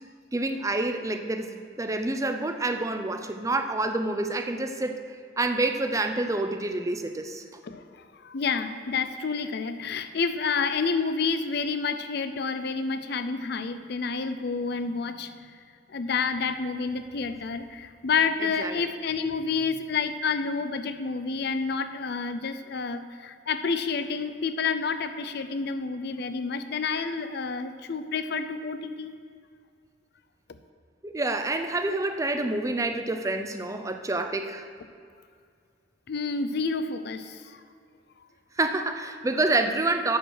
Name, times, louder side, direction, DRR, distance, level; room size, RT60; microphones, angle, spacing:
voice 1, 0.3-5.0 5.4-7.4 18.6-18.8 31.0-34.7 38.6-40.2, right 2 dB, 15° right, 7 dB, 0.5 m, -28 dB
voice 2, 7.6-15.3 15.9-29.1 36.1-37.6, left 5 dB, 60° left, 10 dB, 0.5 m, -29 dB
8.0 x 6.1 x 6.3 m, 2.2 s
head